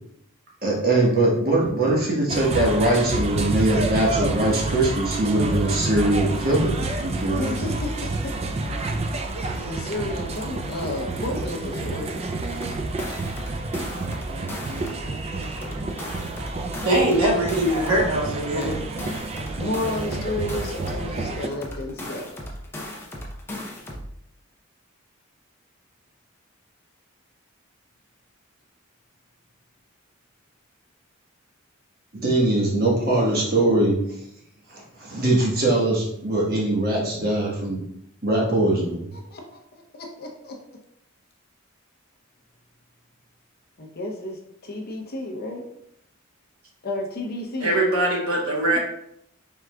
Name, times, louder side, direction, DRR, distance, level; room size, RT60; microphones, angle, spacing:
voice 1, 0.6-7.5 32.1-34.0 34.7-37.8 38.2-39.1, right 1 dB, 45° right, -3 dB, 1.2 m, -22 dB
sound 1, 2.3-21.5, right 2 dB, 30° right, 0.3 m, -29 dB
voice 2, 7.3-8.9 9.4-12.1 19.6-22.3 39.1-40.6 43.8-45.6 46.8-47.8, left 1 dB, 50° left, 1 dB, 0.7 m, -32 dB
sound 2, 12.4-15.1 15.4-18.1 18.4-21.1 21.4-24.1, left 1 dB, 10° left, 0.6 m, -36 dB
voice 3, 16.8-18.8 47.6-48.8, right 1 dB, 85° right, -2 dB, 1.1 m, -22 dB
4.7 x 3.7 x 2.2 m, 0.74 s
head